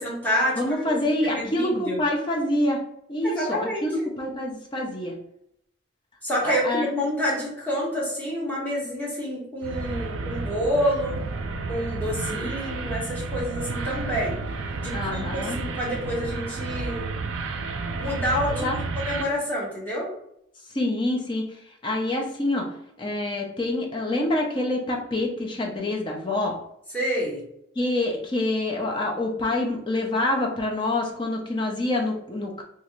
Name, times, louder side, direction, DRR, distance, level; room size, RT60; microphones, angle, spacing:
voice 1, 0.0-1.0 1.3-2.0 3.2-4.1 6.2-11.2 11.7-14.4 14.8-17.1 18.0-18.7 19.0-20.1 26.9-27.4, equal, 10° left, -6 dB, 1.1 m, -28 dB
voice 2, 0.6-2.8 3.1-5.1 6.4-6.9 12.3-12.5 14.9-15.6 18.5-18.8 20.7-21.4 21.8-22.7 23.0-26.6 27.8-32.6, left 1 dB, 25° left, 0 dB, 0.5 m, -26 dB
sound 1, 9.6-19.2, right 3 dB, 90° right, 0.4 m, -31 dB
3.0 x 2.4 x 3.0 m, 0.76 s
head